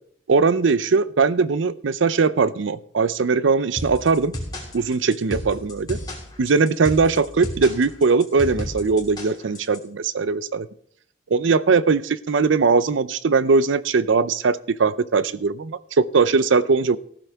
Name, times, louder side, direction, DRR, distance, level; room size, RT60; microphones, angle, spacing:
voice 1, 0.3-4.3 4.7-6.0 6.4-10.7 11.3-17.0, right 4 dB, 80° right, 17 dB, 0.5 m, -20 dB
sound 1, 3.8-9.8, left 1 dB, 20° left, 2.6 m, -32 dB
15.0 x 12.0 x 3.5 m, 0.65 s
head